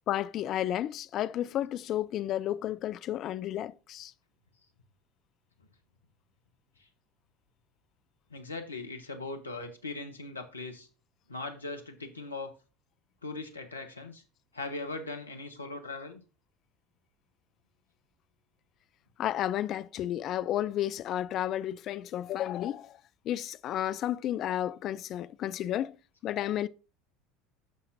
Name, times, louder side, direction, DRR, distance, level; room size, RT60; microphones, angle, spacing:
voice 1, 0.1-4.1 19.2-23.0 23.2-26.0 26.2-26.7, left 12 dB, 45° left, 0.4 m, -32 dB
voice 2, 8.3-10.9 11.3-12.5 13.2-14.2 14.5-16.2, left 3 dB, 85° left, 1.0 m, -39 dB
15.0 x 5.6 x 2.6 m
figure-of-eight pair, 70°, 0 cm